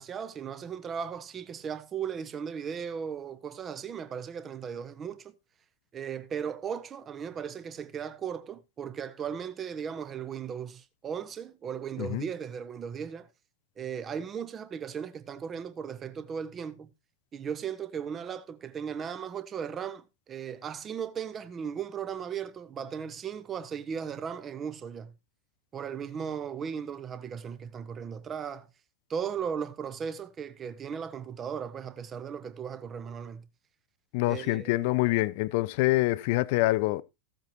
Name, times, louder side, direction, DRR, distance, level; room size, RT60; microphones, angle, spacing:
voice 1, 0.0-5.3 5.9-13.3 13.8-16.9 17.3-25.1 25.7-28.7 29.1-33.5 34.3-34.9, right 7 dB, 25° right, 1.0 m, -37 dB
voice 2, 34.1-37.0, left 19 dB, 50° left, 0.5 m, -26 dB
15.0 x 7.9 x 2.9 m
figure-of-eight pair, 90°, 0 cm